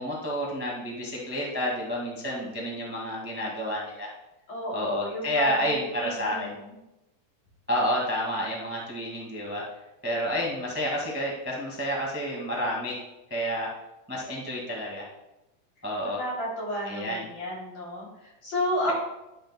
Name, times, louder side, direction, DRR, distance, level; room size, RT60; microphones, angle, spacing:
voice 1, 0.0-4.1 4.7-6.5 7.7-9.6 10.0-13.0 13.3-13.7 14.1-15.1 15.8-16.2 16.8-17.2, equal, 15° right, -3 dB, 0.4 m, -30 dB
voice 2, 4.5-6.7 16.2-18.9, left 1 dB, 50° left, -4 dB, 4.0 m, -32 dB
11.5 x 7.7 x 2.2 m, 0.96 s
omnidirectional pair, 3.9 m